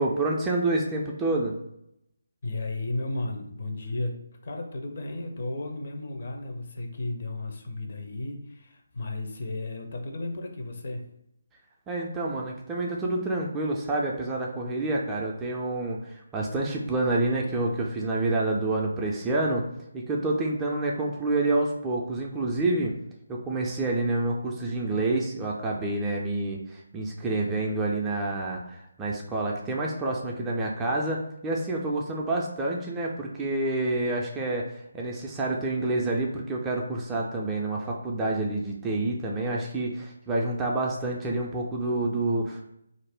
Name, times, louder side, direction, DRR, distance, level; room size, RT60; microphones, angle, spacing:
voice 1, 0.0-1.5 11.9-19.6 19.9-22.9 23.3-42.6, right 2 dB, 10° right, -2 dB, 0.3 m, -28 dB
voice 2, 2.4-4.1 4.4-11.1, left 2 dB, 45° left, 3 dB, 0.5 m, -34 dB
2.4 x 2.1 x 3.4 m, 0.78 s
figure-of-eight pair, 150°, 0 cm